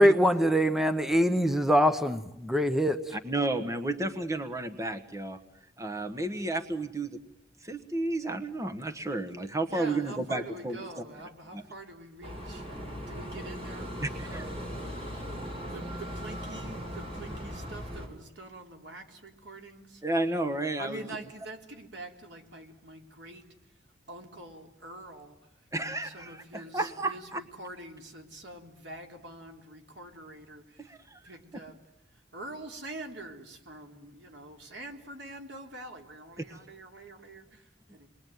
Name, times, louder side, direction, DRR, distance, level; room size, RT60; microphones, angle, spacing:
voice 1, 0.0-3.1, equal, ahead, 9 dB, 1.0 m, -23 dB
voice 2, 3.1-5.4 5.8-7.2 7.6-10.8 11.5-11.6 14.0-14.5 20.0-21.0 25.7-27.4 30.8-31.2 36.5-36.6, right 2 dB, 15° right, 7 dB, 1.4 m, -32 dB
voice 3, 9.7-12.6 13.1-14.5 15.7-20.0 20.8-23.5 24.1-25.3 25.8-30.9 31.2-31.8 32.3-38.1, right 2 dB, 80° right, 3 dB, 3.8 m, -45 dB
sound 1, 12.2-18.1, equal, 35° right, 6.1 m, -38 dB
28.5 x 22.0 x 9.4 m, 0.86 s
head